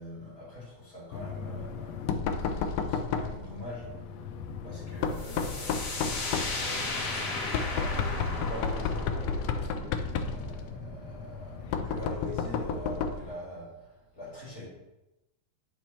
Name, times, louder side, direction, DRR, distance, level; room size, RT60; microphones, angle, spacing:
voice 1, 0.0-4.2 4.6-6.2 6.6-9.1 9.6-9.7 10.2-14.7, left 1 dB, 25° left, -7 dB, 3.2 m, -43 dB
Knock, 1.1-13.3, left 5 dB, 80° left, 1.5 m, -33 dB
sound 1, 5.1-12.7, left 2 dB, 60° left, 1.0 m, -36 dB
8.9 x 5.9 x 3.1 m, 0.98 s
omnidirectional pair, 3.6 m